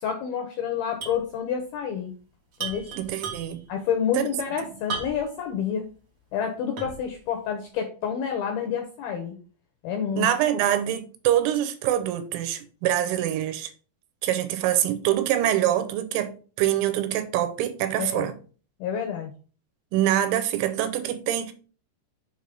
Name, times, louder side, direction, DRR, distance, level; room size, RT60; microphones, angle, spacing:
voice 1, 0.0-2.1 2.6-2.8 3.7-5.9 6.3-9.4 9.8-10.3 18.0-18.3 18.8-19.3, left 7 dB, 80° left, 2.2 m, -28 dB
sound 1, 1.0-1.3 1.5-1.6 2.5-3.7 4.9-5.4 5.9-6.0 6.8-7.1, right 5 dB, 65° right, 1.6 m, -35 dB
voice 2, 3.0-3.6 4.1-4.4 10.2-13.7 14.2-18.3 19.9-21.5, right 12 dB, 85° right, 3.1 m, -25 dB
7.2 x 3.4 x 5.2 m
omnidirectional pair, 5.4 m